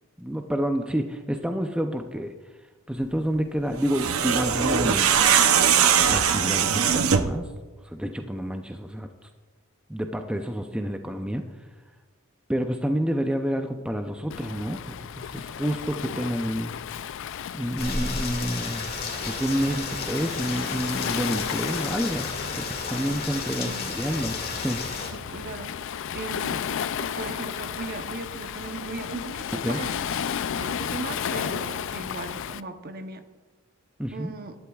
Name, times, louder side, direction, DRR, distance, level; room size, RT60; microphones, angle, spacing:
voice 1, 0.2-2.3 2.9-5.4 6.0-7.5 7.8-9.1 9.9-11.5 12.5-16.7 17.5-18.9 19.2-25.1 29.6-29.8 34.0-34.3, equal, 5° right, 5 dB, 0.5 m, -29 dB
sound 1, 3.8-7.4, right 7 dB, 75° right, 0.7 m, -21 dB
Waves surf, 14.3-32.6, left 8 dB, 60° left, 0.4 m, -33 dB
Rain, 17.8-25.1, left 4 dB, 45° left, 2.0 m, -33 dB
voice 2, 23.6-24.0 25.1-26.7 27.0-30.1 30.5-33.2 34.1-34.5, right 3 dB, 45° right, 7 dB, 0.8 m, -38 dB
18.0 x 11.5 x 2.3 m, 1.3 s
head